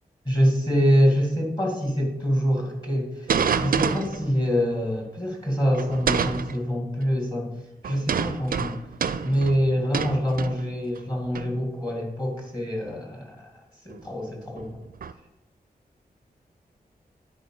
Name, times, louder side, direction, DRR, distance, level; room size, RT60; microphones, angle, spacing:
voice 1, 0.3-7.5 7.8-8.8 9.2-13.5 13.8-14.8, equal, 25° left, 0 dB, 2.2 m, -25 dB
sound 1, 3.3-4.3 5.7-6.6 7.8-11.0 11.3-11.6 12.9-13.0 13.9-14.0 14.6-15.1, right 6 dB, 65° right, 0.4 m, -27 dB
9.9 x 4.6 x 4.8 m, 0.94 s
wide cardioid pair, 105°, 16 cm